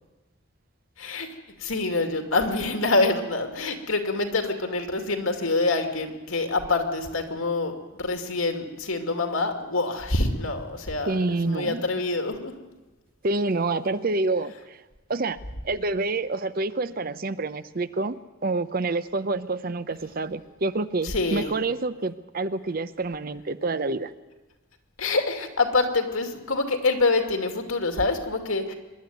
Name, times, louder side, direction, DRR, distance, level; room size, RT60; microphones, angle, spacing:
voice 1, 1.6-11.2 11.5-12.5 21.0-21.5 25.0-28.7, left 3 dB, 75° left, 5 dB, 2.6 m, -26 dB
voice 2, 11.1-12.0 13.2-14.8 15.1-15.4 15.6-18.1 18.4-24.1, right 3 dB, 40° right, 13 dB, 0.6 m, -27 dB
24.5 x 11.5 x 9.2 m, 1.1 s
head